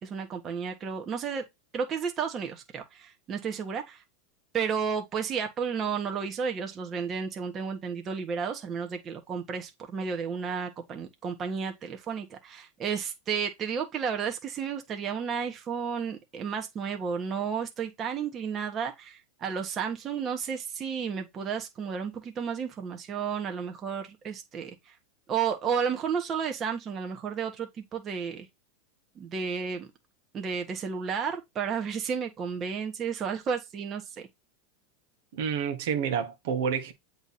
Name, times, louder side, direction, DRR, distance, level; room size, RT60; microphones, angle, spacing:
voice 1, 0.0-1.4 1.7-4.0 4.5-24.7 25.3-28.5 29.1-29.9 30.3-34.3, right 6 dB, 30° right, 1.6 m, -32 dB
voice 2, 35.3-36.9, right 7 dB, 70° right, 1.5 m, -29 dB
8.0 x 3.4 x 4.3 m
hypercardioid pair, 115°, 0 cm